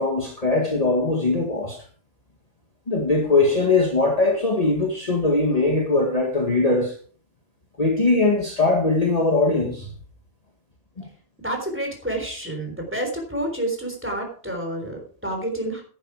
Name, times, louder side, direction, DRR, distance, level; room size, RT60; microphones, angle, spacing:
voice 1, 0.0-1.8 2.9-7.0 7.8-9.9 11.0-11.1, left 3 dB, 30° left, 1.8 m, -21 dB
voice 2, 11.4-15.8, right 1 dB, 10° right, 3.7 m, -29 dB
10.5 x 10.0 x 4.8 m
omnidirectional pair, 1.3 m